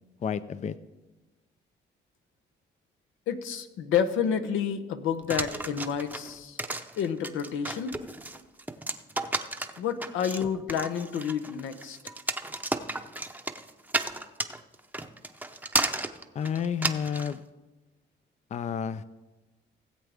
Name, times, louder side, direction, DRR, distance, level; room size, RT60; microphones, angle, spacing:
voice 1, 0.2-0.8 16.3-17.4 18.5-19.0, left 7 dB, 35° left, 15 dB, 0.4 m, -30 dB
voice 2, 3.3-6.6 7.0-8.0 9.8-12.0, left 7 dB, 90° left, 9 dB, 0.8 m, -29 dB
sound 1, 5.3-17.3, right 2 dB, 10° right, 0.7 m, -33 dB
17.5 x 7.9 x 3.5 m, 1.1 s
cardioid pair, 90°, 20 cm